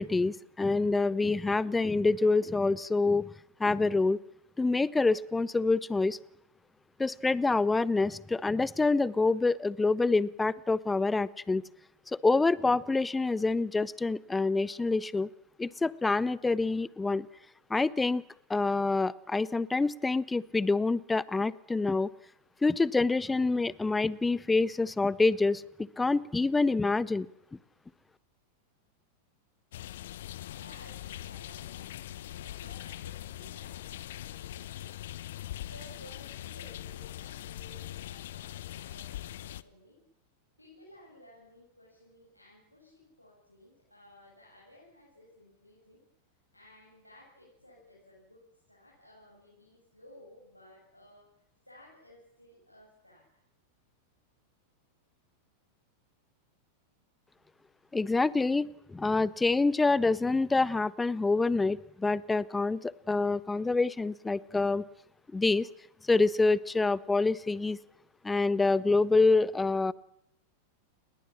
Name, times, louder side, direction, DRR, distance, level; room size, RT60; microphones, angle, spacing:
voice 1, 0.0-3.3 3.6-4.2 4.6-6.2 7.0-11.6 12.1-15.3 15.6-17.3 17.7-18.2 18.5-22.1 22.6-25.6 26.0-27.3 57.9-64.8 65.3-65.7 66.1-67.8 68.2-69.9, left 3 dB, 10° left, 21 dB, 0.9 m, -26 dB
sound 1, 29.7-39.6, left 13 dB, 55° left, 1.0 m, -42 dB
voice 2, 30.5-35.2 35.6-40.0 40.6-46.0 46.5-53.4, left 1 dB, 90° left, -5 dB, 8.0 m, -56 dB
30.0 x 21.0 x 7.3 m, 0.76 s
figure-of-eight pair, 90°, 0 cm